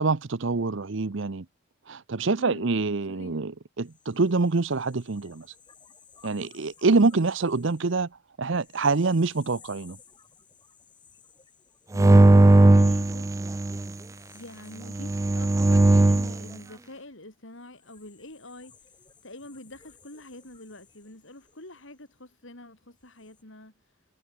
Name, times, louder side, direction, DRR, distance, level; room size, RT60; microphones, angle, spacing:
voice 1, 0.0-1.5 1.9-5.5 6.2-8.1 8.4-10.0, right 3 dB, 60° right, 0.7 m, -25 dB
voice 2, 3.1-3.4 11.9-13.8 14.3-18.9 19.2-24.0, left 1 dB, 65° left, 3.9 m, -45 dB
sound 1, 3.8-13.0 13.7-22.4 22.9-23.4, left 6 dB, 20° left, 7.6 m, -58 dB
sound 2, 11.9-13.9 14.9-16.4, right 2 dB, 15° right, 0.3 m, -18 dB
head